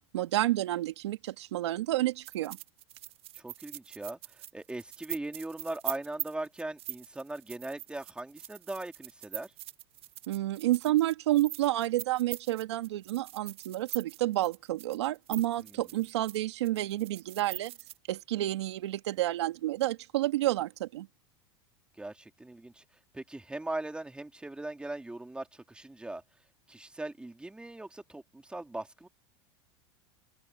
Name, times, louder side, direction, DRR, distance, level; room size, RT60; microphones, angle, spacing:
voice 1, 0.1-2.6 10.3-17.7 18.1-21.1, right 15 dB, 80° right, 1.7 m, -30 dB
sound 1, 2.2-16.4 16.6-18.0, right 14 dB, 45° right, 1.5 m, -42 dB
voice 2, 3.3-9.5 15.6-15.9 22.0-22.8 23.1-26.2 26.7-29.1, right 2 dB, 5° right, 3.0 m, -40 dB
hypercardioid pair, 110°, 14 cm